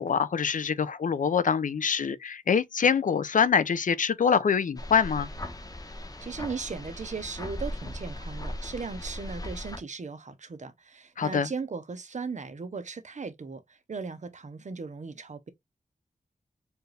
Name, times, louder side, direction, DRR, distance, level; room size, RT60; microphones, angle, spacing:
voice 1, 0.0-5.3 11.2-11.5, left 6 dB, 70° left, 0.5 m, -25 dB
sound 1, 4.8-9.8, left 1 dB, 25° left, 1.0 m, -38 dB
voice 2, 5.9-15.5, right 4 dB, 60° right, 0.9 m, -37 dB
4.5 x 2.5 x 3.3 m
wide cardioid pair, 65°, 14 cm